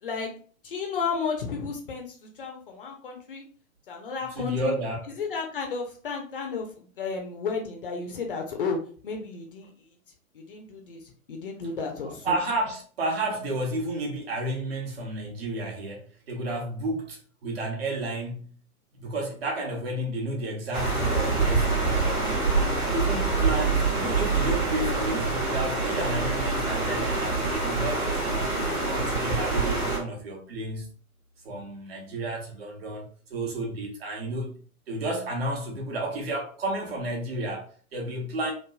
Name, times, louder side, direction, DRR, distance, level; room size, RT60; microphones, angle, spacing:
voice 1, 0.0-0.3 0.6-3.4 3.9-4.7 5.0-8.8 9.0-10.0 10.3-12.4, left 5 dB, 40° left, 0.6 m, -33 dB
voice 2, 4.4-5.0 12.2-18.5 19.0-22.4 22.9-28.5 28.9-30.9 31.4-34.6 34.9-38.5, right 1 dB, 45° right, 1.0 m, -32 dB
sound 1, 20.7-30.0, right 3 dB, 85° right, 1.1 m, -25 dB
3.1 x 2.2 x 2.2 m
figure-of-eight pair, 115°, 43 cm